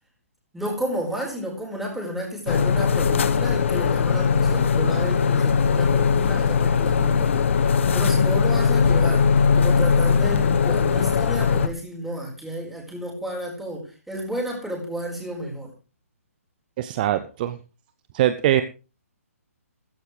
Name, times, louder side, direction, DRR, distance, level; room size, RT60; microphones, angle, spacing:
voice 1, 0.5-7.4 7.9-15.7, equal, ahead, -2 dB, 4.7 m, -31 dB
sound 1, 2.5-11.7, left 6 dB, 55° left, 1.2 m, -20 dB
voice 2, 16.8-17.6 18.1-18.6, right 12 dB, 35° right, 12 dB, 0.7 m, -22 dB
14.5 x 14.0 x 3.3 m, 0.33 s
figure-of-eight pair, 135°, 8 cm